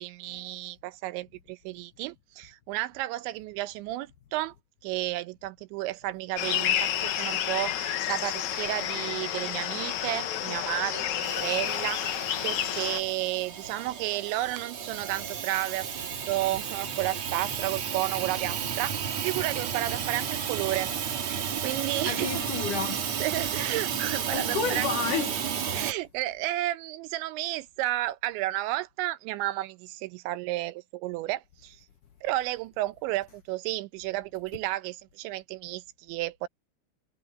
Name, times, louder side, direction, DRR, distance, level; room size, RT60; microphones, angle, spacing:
voice 1, 0.0-4.5 4.8-12.0 12.4-15.9 16.3-18.9 19.2-20.9 21.3-22.3 23.2-24.9 25.7-31.8 32.2-36.5, right 16 dB, 85° right, 3.1 m, -32 dB
sound 1, 6.4-13.0, left 10 dB, 90° left, 1.6 m, -30 dB
Hiss / Toilet flush / Trickle dribble, 11.2-25.9, right 8 dB, 50° right, 2.2 m, -33 dB
voice 2, 22.1-23.1 24.3-25.4, left 6 dB, 70° left, 2.1 m, -31 dB
omnidirectional pair, 5.2 m